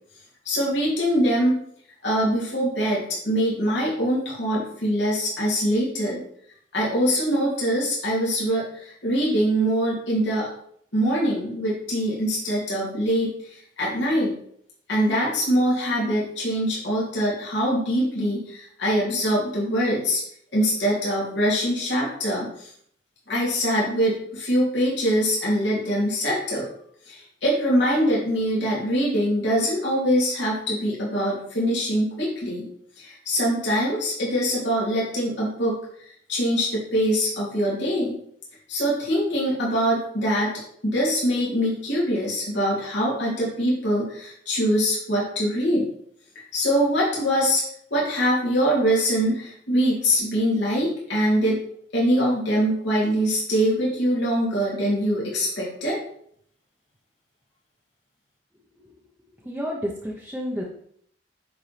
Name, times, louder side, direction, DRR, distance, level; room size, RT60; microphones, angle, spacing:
voice 1, 0.4-1.6 2.0-6.2 6.7-10.5 10.9-14.3 14.9-20.2 20.5-22.7 23.3-26.7 27.1-32.7 33.0-35.8 36.3-38.2 38.7-45.9 46.5-47.6 47.9-51.6 51.9-56.0, equal, 70° left, -6 dB, 2.9 m, -23 dB
voice 2, 59.4-60.6, equal, 5° right, -4 dB, 1.0 m, -31 dB
10.0 x 4.3 x 3.4 m, 0.65 s
head